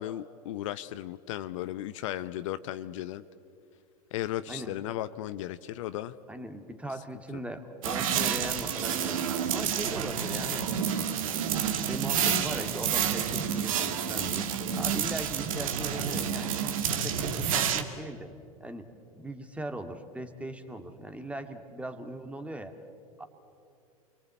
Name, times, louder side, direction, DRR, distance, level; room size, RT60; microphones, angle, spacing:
voice 1, 0.0-3.2 4.1-6.2, left 13 dB, 60° left, 13 dB, 0.8 m, -35 dB
voice 2, 4.5-4.8 6.3-10.7 11.1-11.6 11.8-16.6 16.9-18.3 18.6-18.9 19.2-22.8 23.2-23.3, right 1 dB, 5° right, 7 dB, 2.1 m, -39 dB
sound 1, 7.8-17.8, right 8 dB, 65° right, 2.0 m, -29 dB
29.0 x 23.0 x 8.4 m, 2.5 s
figure-of-eight pair, 90°, 19 cm